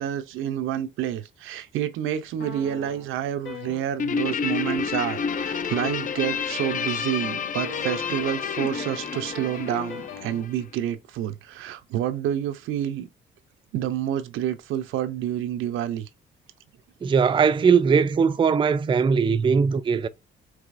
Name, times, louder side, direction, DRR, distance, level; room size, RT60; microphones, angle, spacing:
voice 1, 0.0-13.1 13.7-16.1, right 10 dB, 85° right, 0.6 m, -28 dB
sound 1, 2.4-4.2 4.7-10.5, left 4 dB, 70° left, 1.3 m, -38 dB
Guitar, 4.0-10.7, left 6 dB, 40° left, 0.5 m, -30 dB
voice 2, 17.0-20.1, right 6 dB, 25° right, 0.4 m, -20 dB
4.8 x 3.2 x 2.5 m
cardioid pair, 90°, 20 cm